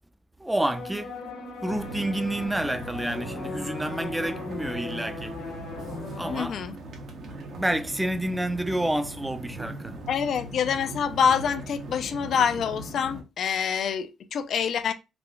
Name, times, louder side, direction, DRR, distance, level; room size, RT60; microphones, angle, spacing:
voice 1, 0.4-1.1 1.6-5.4 6.2-6.5 7.6-10.0, right 1 dB, 10° right, 0.4 m, -29 dB
sound 1, 0.7-6.4, left 3 dB, 85° left, 0.8 m, -38 dB
sound 2, 1.7-13.2, right 2 dB, 65° right, 0.7 m, -40 dB
voice 2, 6.3-6.8 10.1-14.9, left 7 dB, 65° left, 0.3 m, -26 dB
3.6 x 2.4 x 2.2 m
cardioid pair, 90°, 0 cm